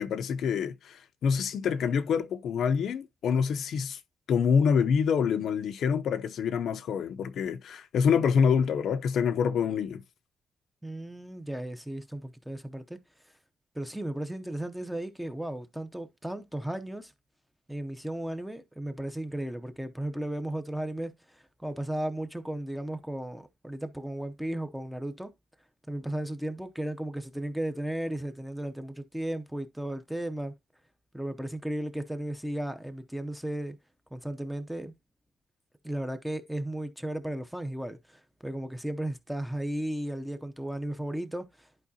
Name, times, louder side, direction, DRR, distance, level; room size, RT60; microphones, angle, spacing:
voice 1, 0.0-4.0 4.3-10.0, left 6 dB, 65° left, 0.6 m, -26 dB
voice 2, 10.8-13.0 13.7-17.1 17.7-25.3 25.9-30.5 31.1-33.8 34.1-34.9 35.8-41.7, right 1 dB, ahead, 0.7 m, -35 dB
11.0 x 4.7 x 2.8 m
wide cardioid pair, 165°, 0 cm